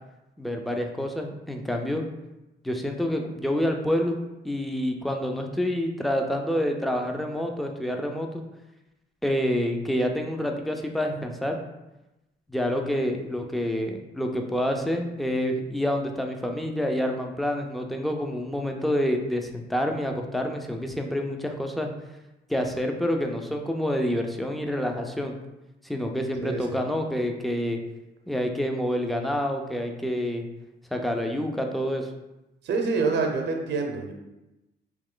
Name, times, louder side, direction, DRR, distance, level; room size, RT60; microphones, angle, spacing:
voice 1, 0.4-2.0 2.6-8.4 9.2-11.6 12.5-21.9 22.5-25.3 25.8-27.8 28.3-30.4 30.9-32.1, equal, ahead, 3 dB, 0.5 m, -28 dB
voice 2, 26.4-26.8 32.6-34.1, right 4 dB, 60° right, 3 dB, 0.8 m, -26 dB
3.1 x 2.9 x 3.8 m, 0.99 s
cardioid pair, 90°, 20 cm